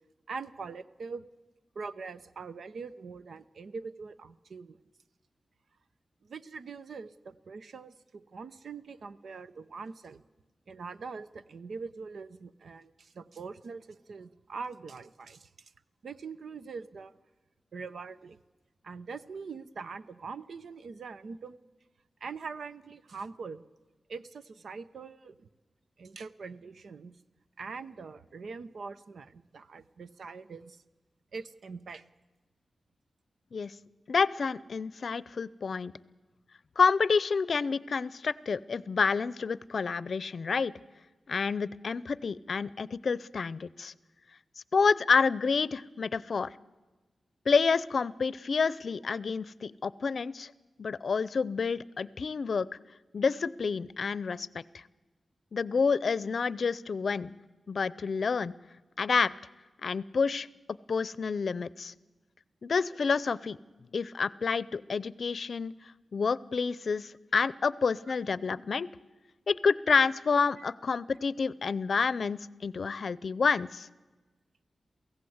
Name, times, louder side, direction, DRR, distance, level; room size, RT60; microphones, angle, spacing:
voice 1, 0.3-1.3 1.7-4.8 6.2-10.2 10.7-15.7 16.0-17.1 17.7-18.4 18.8-21.6 22.2-23.6 24.1-25.5 26.0-27.2 27.6-30.8 31.3-32.0 70.6-70.7, right 4 dB, 80° right, 13 dB, 0.8 m, -43 dB
voice 2, 34.1-35.9 36.8-40.7 41.3-43.9 44.7-46.5 47.5-50.5 50.8-52.7 53.1-54.5 54.7-54.8 55.5-57.3 57.7-58.5 59.0-59.3 59.8-60.5 60.9-61.9 62.6-63.6 63.9-65.7 66.1-68.9 69.5-73.9, left 5 dB, 65° left, 20 dB, 0.6 m, -28 dB
23.5 x 16.0 x 7.9 m, 1.2 s
wide cardioid pair, 90°, 0 cm